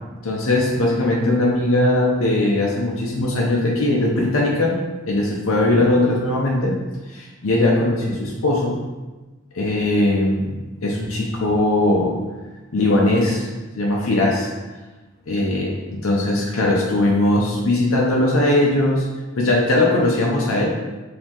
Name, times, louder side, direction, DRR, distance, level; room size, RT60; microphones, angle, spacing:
voice 1, 0.2-4.8 5.1-6.8 7.1-8.8 9.5-10.5 10.8-12.2 12.7-13.5 13.8-14.5 15.3-19.1 19.4-20.7, left 1 dB, 70° left, -3 dB, 0.6 m, -19 dB
5.4 x 2.8 x 2.9 m, 1.2 s
head